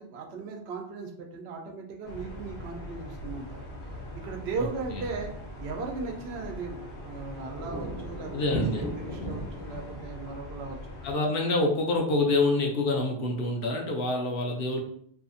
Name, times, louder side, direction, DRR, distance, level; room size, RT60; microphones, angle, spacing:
voice 1, 0.0-3.6 4.2-5.3 5.6-8.4 8.8-10.8, right 4 dB, 80° right, 2 dB, 0.8 m, -37 dB
sound 1, 2.0-11.2, left 1 dB, 85° left, 1.1 m, -42 dB
sound 2, 3.1-10.0, right 1 dB, 25° right, 0.5 m, -39 dB
voice 2, 4.6-5.0 8.3-8.9 11.0-14.8, left 2 dB, 70° left, 1 dB, 0.8 m, -27 dB
2.7 x 2.4 x 2.5 m, 0.64 s
omnidirectional pair, 1.1 m